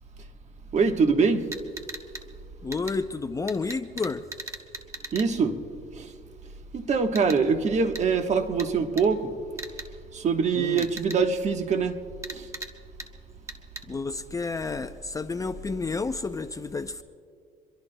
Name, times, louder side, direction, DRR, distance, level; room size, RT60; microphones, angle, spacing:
voice 1, 0.7-1.5 5.1-5.6 6.0-6.1 6.7-9.3 10.1-12.0 12.3-12.4, right 5 dB, 45° right, 1.2 m, -24 dB
sound 1, 1.5-2.2 2.7-3.0 3.5-5.3 7.2-7.4 8.0-8.1 8.6-8.7 9.0-9.1 9.6-9.9 10.8-11.2 12.2-12.7 13.0-13.1 13.5-13.8, right 2 dB, 15° right, 1.1 m, -37 dB
voice 2, 2.6-4.2 10.5-10.9 13.9-17.0, left 4 dB, 20° left, 0.5 m, -31 dB
26.0 x 22.5 x 2.2 m
cardioid pair, 110°, 17 cm